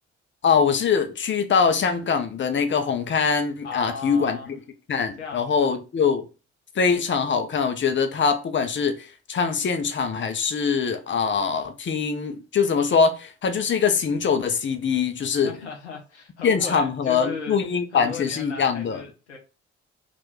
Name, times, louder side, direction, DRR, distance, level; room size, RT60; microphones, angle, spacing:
voice 1, 0.4-4.4 4.9-6.3 6.7-15.6 16.4-19.0, left 6 dB, 35° left, 0.8 m, -23 dB
voice 2, 3.6-4.5 5.2-5.7 15.4-17.6 17.9-19.4, left 5 dB, 90° left, 0.8 m, -36 dB
3.7 x 2.5 x 3.3 m
figure-of-eight pair, 40°, 33 cm